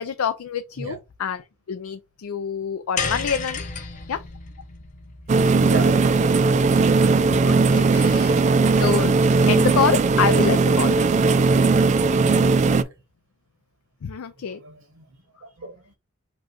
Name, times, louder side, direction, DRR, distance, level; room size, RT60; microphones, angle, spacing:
voice 1, 0.0-3.6 4.1-4.2 7.3-9.2 9.5-11.1 14.0-14.6, left 7 dB, 80° left, 0.4 m, -27 dB
sound 1, 3.0-7.4, left 5 dB, 35° left, 0.7 m, -33 dB
sound 2, 5.3-12.8, right 4 dB, 35° right, 0.3 m, -18 dB
voice 2, 5.7-6.3 6.7-6.8 12.7-12.9 14.6-15.1 15.4-15.9, right 3 dB, 70° right, 0.9 m, -35 dB
5.1 x 2.3 x 4.4 m
head